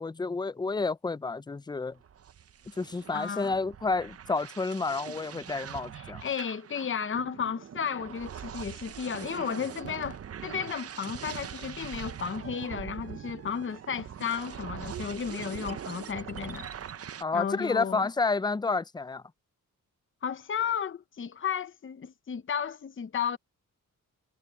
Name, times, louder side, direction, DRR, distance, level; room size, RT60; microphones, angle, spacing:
voice 1, 0.0-2.0 2.8-6.2 17.2-19.2, left 4 dB, 15° left, 0.4 m, -30 dB
sound 1, 2.0-17.2, right 8 dB, 45° right, 0.7 m, -42 dB
voice 2, 3.1-3.5 5.9-16.7 17.3-18.1 20.2-23.4, left 7 dB, 35° left, 0.9 m, -33 dB
cardioid pair, 90°, 33 cm